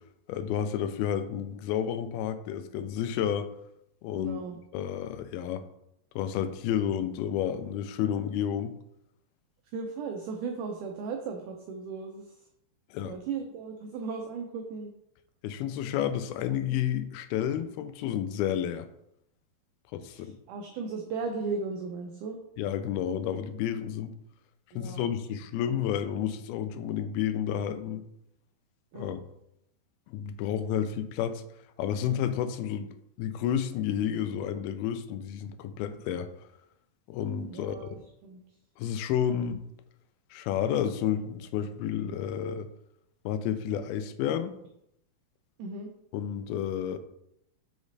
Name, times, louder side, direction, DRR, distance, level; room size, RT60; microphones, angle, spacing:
voice 1, 0.3-3.5 4.0-4.4 4.7-5.7 6.2-8.7 12.9-13.2 15.4-18.9 19.9-20.3 22.6-24.1 24.8-28.1 28.9-29.2 30.1-31.4 31.8-36.5 37.1-38.0 38.8-39.6 40.3-42.7 43.3-44.5 46.1-47.0, left 9 dB, 85° left, 11 dB, 2.5 m, -31 dB
voice 2, 4.2-4.6 9.7-12.4 13.0-14.9 20.1-22.4 24.7-25.1 28.9-29.2 37.4-38.4 45.6-45.9, right 4 dB, 85° right, 3 dB, 1.8 m, -36 dB
6.1 x 5.1 x 4.0 m, 0.77 s
omnidirectional pair, 4.4 m